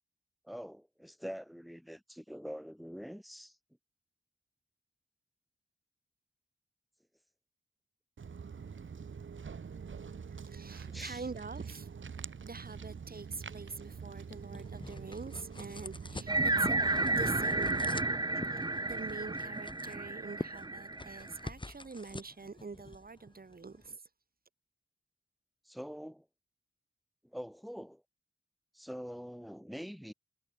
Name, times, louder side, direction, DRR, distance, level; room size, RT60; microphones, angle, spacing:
voice 1, 0.4-3.6 10.9-11.2 25.7-26.3 27.3-28.0 28.7-30.1, equal, ahead, 5.2 m, -44 dB
Walk footsteps, 8.2-18.1, right 6 dB, 80° right, 6.7 m, -45 dB
voice 2, 10.3-18.1 18.5-24.0, right 4 dB, 50° right, 6.1 m, -45 dB
sound 1, 13.7-23.9, left 2 dB, 25° left, 3.5 m, -47 dB
sound 2, 16.3-21.5, right 2 dB, 20° right, 1.1 m, -32 dB
wide cardioid pair, 95°, 20 cm